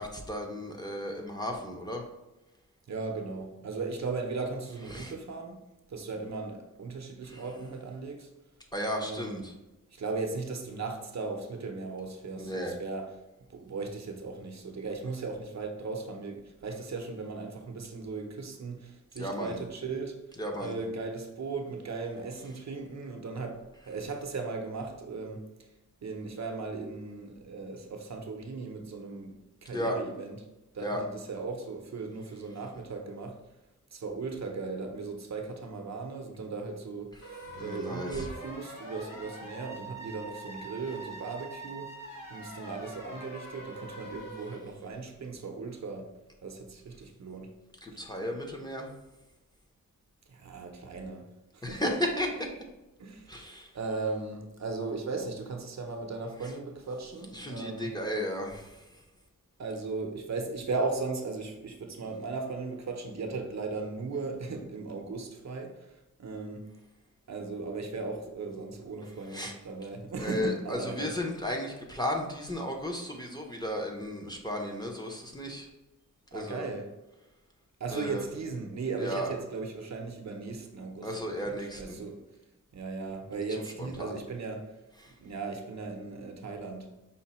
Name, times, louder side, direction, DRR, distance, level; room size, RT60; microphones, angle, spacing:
voice 1, 0.0-2.0 4.9-5.1 7.3-7.4 8.7-9.5 12.4-12.7 19.2-19.6 20.4-20.7 29.7-30.0 30.8-31.0 37.5-38.3 47.8-48.9 51.6-52.5 53.3-53.7 56.4-56.5 57.3-58.8 69.3-69.5 70.2-75.7 76.3-76.7 77.9-78.2 79.0-79.3 81.0-82.0 83.8-84.1 85.0-85.1, left 1 dB, 15° left, 0 dB, 0.6 m, -34 dB
voice 2, 2.9-5.6 5.9-8.3 9.0-9.4 9.9-13.1 13.5-20.2 20.6-25.4 26.0-30.4 30.7-33.4 33.9-41.9 42.3-46.1 46.4-47.5 50.3-51.3 51.5-51.9 53.0-53.5 53.7-57.9 59.6-65.9 66.2-66.7 67.3-71.1 76.3-76.9 77.8-82.2 82.7-84.7 85.2-86.9, right 4 dB, 55° right, 4 dB, 0.6 m, -37 dB
sound 1, 37.2-44.6, right 2 dB, 80° left, 1.0 m, -44 dB
5.6 x 2.2 x 4.1 m, 0.99 s
wide cardioid pair, 100°, 32 cm